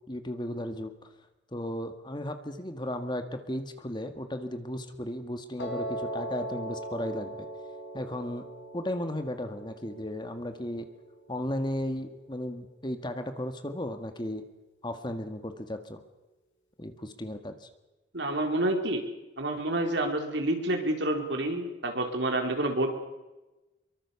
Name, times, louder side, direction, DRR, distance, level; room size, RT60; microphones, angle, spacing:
voice 1, 0.1-1.1 1.5-7.5 7.9-8.4 8.7-10.9 11.3-14.4 14.8-16.0 16.8-17.7, left 1 dB, 25° left, 8 dB, 1.7 m, -35 dB
Piano, 5.6-11.7, right 1 dB, 90° left, 5.6 m, -40 dB
voice 2, 18.1-19.0 19.4-22.9, right 1 dB, 70° right, 4 dB, 4.1 m, -28 dB
24.5 x 23.5 x 7.0 m, 1.1 s
head